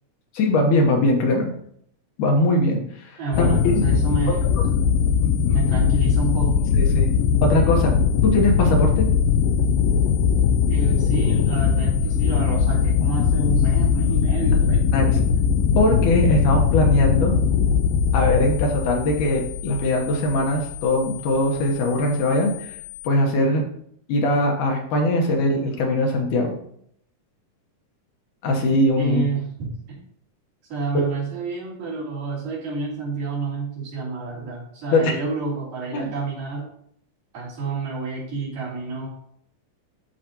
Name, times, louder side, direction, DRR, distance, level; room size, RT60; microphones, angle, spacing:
voice 1, 0.3-1.5 2.2-3.8 6.8-7.1 7.4-7.9 8.2-9.1 14.9-15.1 15.8-17.3 18.1-22.7 23.0-23.6 24.1-26.5 28.4-29.2 30.9-31.0 34.9-35.1 35.9-36.0, left 1 dB, 70° left, 1 dB, 2.5 m, -21 dB
voice 2, 3.2-4.5 5.2-6.7 10.7-14.9 29.0-30.0 30.7-36.7 37.3-39.1, right 4 dB, 70° right, -8 dB, 5.1 m, -29 dB
sound 1, 3.3-23.1, left 6 dB, 85° left, 2.4 m, -21 dB
13.0 x 5.0 x 2.9 m, 0.68 s
omnidirectional pair, 3.9 m